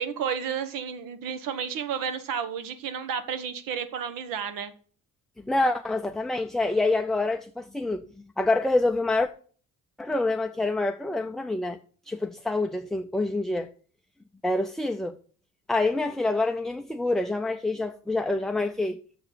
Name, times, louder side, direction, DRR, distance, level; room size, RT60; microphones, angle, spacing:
voice 1, 0.0-4.7, right 7 dB, 90° right, 1.3 m, -32 dB
voice 2, 5.5-8.1 8.4-9.3 10.0-11.8 12.1-13.7 14.4-15.2 15.7-19.0, left 2 dB, ahead, 0.4 m, -26 dB
6.9 x 6.9 x 7.4 m
cardioid pair, 145°, 32 cm